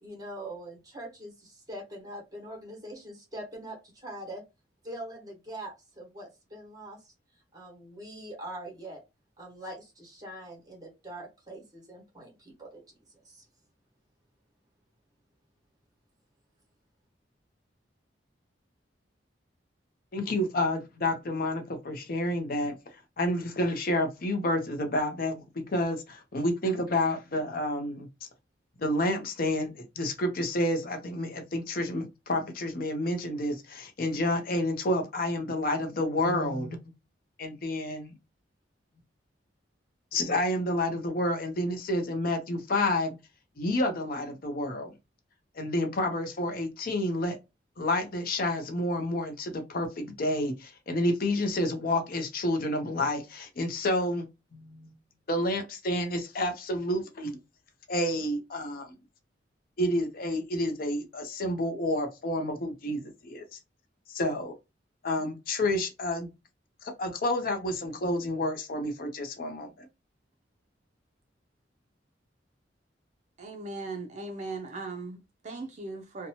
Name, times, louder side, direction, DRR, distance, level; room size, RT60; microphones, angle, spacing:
voice 1, 0.0-4.4 4.8-7.1 7.5-9.0 9.4-12.8 13.2-13.4, right 1 dB, 20° right, 1.1 m, -43 dB
voice 2, 20.1-22.7 23.2-28.1 28.8-36.8 37.4-38.1 40.1-43.2 43.6-44.9 45.5-47.4 47.8-54.3 54.5-54.9 55.3-57.4 57.9-58.9 59.8-63.4 64.1-64.5 65.0-66.3 66.8-69.9, left 1 dB, 50° left, 0.6 m, -29 dB
voice 3, 73.4-76.3, right 3 dB, 40° right, 0.4 m, -38 dB
2.7 x 2.2 x 2.8 m
head